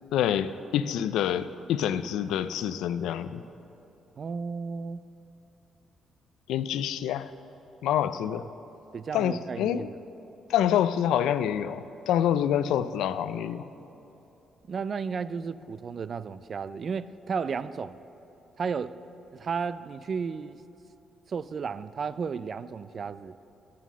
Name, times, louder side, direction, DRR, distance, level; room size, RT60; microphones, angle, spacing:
voice 1, 0.1-3.4 6.5-7.3 7.8-8.5 9.1-9.9 10.5-13.7, left 10 dB, 85° left, 13 dB, 0.3 m, -27 dB
voice 2, 4.2-5.0 8.2-8.3 8.9-9.9 14.7-18.0 18.6-18.9 19.3-20.6 21.3-23.3, right 5 dB, 45° right, 16 dB, 0.3 m, -33 dB
8.5 x 7.4 x 7.2 m, 2.9 s
cardioid pair, 90°, 0 cm